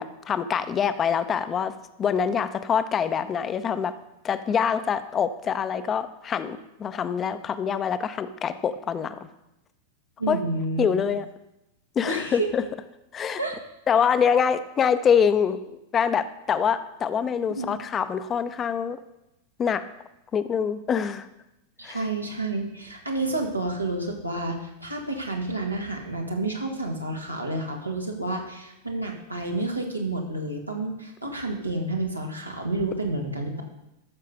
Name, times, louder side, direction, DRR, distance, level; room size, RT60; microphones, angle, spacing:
voice 1, 0.0-1.7 2.0-3.9 4.2-9.1 10.3-10.4 10.8-11.3 12.0-12.6 13.1-13.4 13.9-19.0 19.6-19.8 20.3-21.3 21.8-22.0, left 7 dB, 25° left, 12 dB, 0.7 m, -25 dB
voice 2, 10.2-11.2 12.1-12.5 13.4-13.6 17.5-17.7 21.8-33.6, right 2 dB, 85° right, 1 dB, 1.9 m, -30 dB
13.5 x 6.6 x 5.3 m, 0.90 s
figure-of-eight pair, 90°, 0 cm